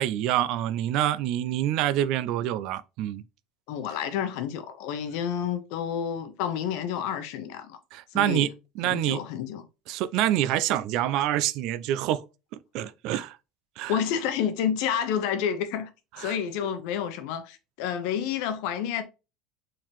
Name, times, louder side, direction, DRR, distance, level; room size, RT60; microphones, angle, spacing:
voice 1, 0.0-3.2 7.9-8.5 8.8-9.2 9.9-12.2 12.7-13.4 13.8-14.0 16.2-16.4, right 12 dB, 55° right, 0.4 m, -26 dB
voice 2, 3.7-7.8 8.1-8.5 8.8-9.6 13.1-13.2 13.9-15.9 16.2-19.0, left 8 dB, 65° left, 0.9 m, -29 dB
4.5 x 3.7 x 3.0 m
cardioid pair, 155°, 0 cm